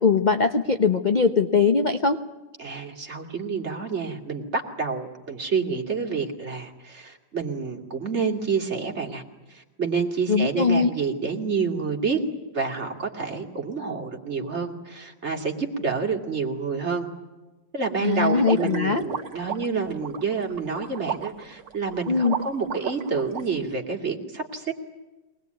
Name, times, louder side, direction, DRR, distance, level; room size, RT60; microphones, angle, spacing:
voice 1, 0.0-2.2 10.3-10.9 18.0-19.0 22.1-22.3, left 5 dB, 35° left, 7 dB, 0.8 m, -21 dB
voice 2, 2.6-9.2 9.5-12.2 12.5-17.1 17.7-24.7, right 5 dB, 35° right, 2 dB, 2.8 m, -28 dB
sound 1, 18.4-23.4, right 7 dB, 70° right, 2.1 m, -33 dB
23.5 x 20.0 x 9.4 m, 1.1 s
omnidirectional pair, 2.0 m